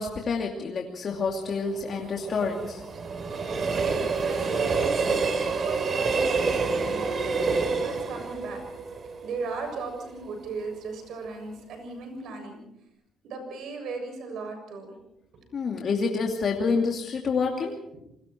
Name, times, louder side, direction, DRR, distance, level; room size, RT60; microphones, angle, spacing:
voice 1, 0.0-2.8 15.5-17.7, left 4 dB, 50° left, 1 dB, 2.6 m, -28 dB
Train, 1.2-10.3 10.6-10.7, right 4 dB, 45° right, 3.7 m, -28 dB
voice 2, 4.2-5.0 5.6-7.3 7.8-8.6 9.2-12.6 13.2-14.9 15.3-15.5 17.3-17.4 17.9-18.0, right 4 dB, 75° right, 5 dB, 7.2 m, -37 dB
28.0 x 20.5 x 4.6 m, 0.81 s
cardioid pair, 90°, 0 cm